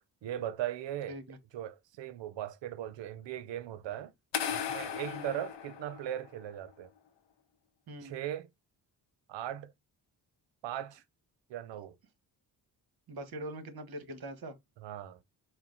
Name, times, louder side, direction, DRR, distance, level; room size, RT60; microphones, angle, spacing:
voice 1, 0.2-1.2 1.5-4.1 4.5-6.9 8.0-8.5 9.3-9.7 10.6-11.0 11.5-12.0 14.8-15.2, right 11 dB, 80° right, 0.6 m, -38 dB
sound 1, 4.3-6.4, left 8 dB, 75° left, 0.8 m, -37 dB
voice 2, 13.1-14.5, right 1 dB, 55° right, 1.1 m, -42 dB
4.4 x 2.0 x 3.8 m
cardioid pair, 90°, 43 cm